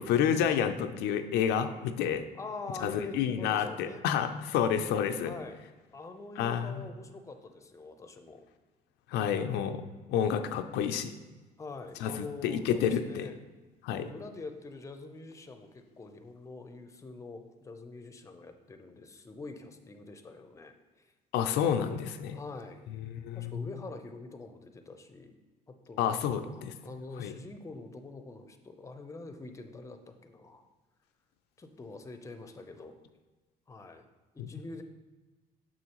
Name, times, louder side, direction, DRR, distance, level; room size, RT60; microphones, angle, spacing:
voice 1, 0.0-2.2 2.8-5.3 6.4-6.9 9.1-9.8 10.1-11.1 12.0-13.3 13.8-14.1 21.3-22.4 23.1-23.6 26.0-26.7 27.2-27.3 34.4-34.5, left 8 dB, 85° left, 8 dB, 0.5 m, -29 dB
voice 2, 2.4-4.0 5.2-5.6 5.9-8.5 11.6-13.3 13.9-21.1 22.3-22.9 23.3-25.3 25.7-30.6 31.6-33.0 33.7-34.0 34.3-34.8, left 3 dB, 20° left, 7 dB, 0.6 m, -45 dB
6.2 x 6.2 x 3.0 m, 1.2 s
cardioid pair, 110°, 17 cm